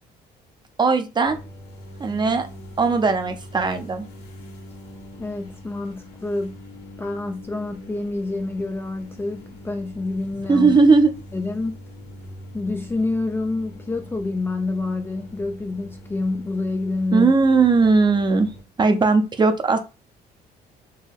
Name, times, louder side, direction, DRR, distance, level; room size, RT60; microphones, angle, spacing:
voice 1, 0.8-1.4 2.0-2.5 2.8-4.0 10.5-11.1 17.1-18.5 18.8-19.8, right 4 dB, 25° right, 0.6 m, -18 dB
sound 1, 1.2-18.6, left 1 dB, 75° left, 1.5 m, -42 dB
voice 2, 5.2-6.6 7.0-10.8 11.3-11.8 12.5-17.3 18.9-19.0, left 2 dB, 15° left, 0.4 m, -27 dB
4.5 x 2.2 x 3.4 m
cardioid pair, 110°, 17 cm